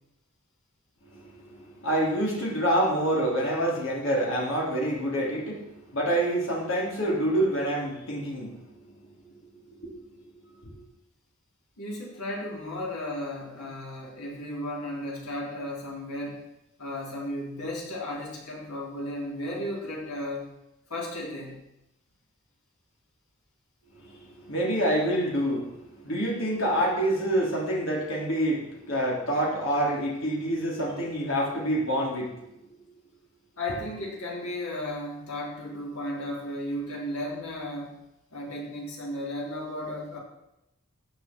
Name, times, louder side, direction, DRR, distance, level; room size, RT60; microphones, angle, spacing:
voice 1, 1.0-10.0 10.6-10.8 23.9-32.5, right 1 dB, 60° left, -3 dB, 3.6 m, -27 dB
voice 2, 11.8-16.4 16.8-20.5 20.9-21.6 33.6-38.0 38.3-40.2, left 1 dB, 85° left, -3 dB, 4.0 m, -34 dB
14.5 x 8.4 x 4.6 m, 0.88 s
head